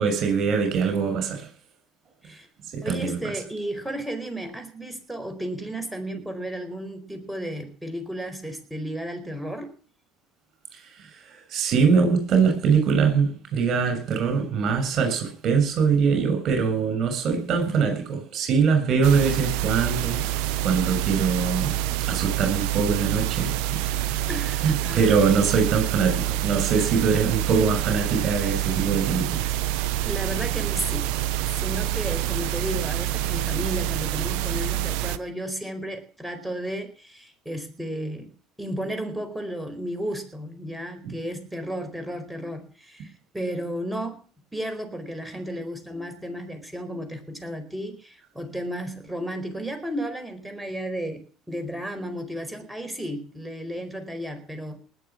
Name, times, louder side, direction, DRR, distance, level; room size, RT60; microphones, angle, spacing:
voice 1, 0.0-1.5 2.7-3.2 10.7-20.2 20.6-23.5 24.6-29.5 41.0-41.1, right 5 dB, 50° right, 6.6 m, -23 dB
voice 2, 2.8-9.7 24.3-25.1 30.0-31.1 31.5-38.3 38.6-44.2 44.5-54.8, equal, 5° right, 4.6 m, -33 dB
sound 1, 19.0-35.2, right 13 dB, 70° right, 0.8 m, -27 dB
20.0 x 7.0 x 7.5 m
hypercardioid pair, 70°, 0 cm